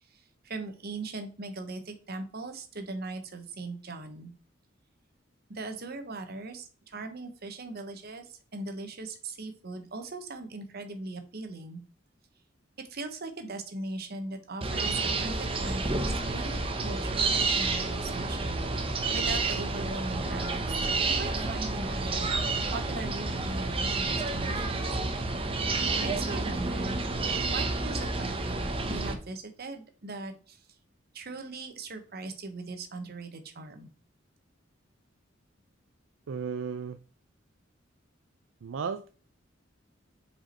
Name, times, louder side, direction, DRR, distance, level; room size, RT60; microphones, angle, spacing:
voice 1, 0.0-4.3 5.5-11.8 12.8-16.6 16.8-18.7 19.1-20.8 21.0-25.0 26.0-27.0 27.4-30.7 31.1-33.9, right 3 dB, 55° right, 1.1 m, -40 dB
sound 1, 14.6-29.1, right 3 dB, 30° right, 0.8 m, -30 dB
voice 2, 36.3-37.0 38.6-39.1, right 6 dB, 75° right, 0.4 m, -34 dB
5.1 x 4.8 x 4.4 m
head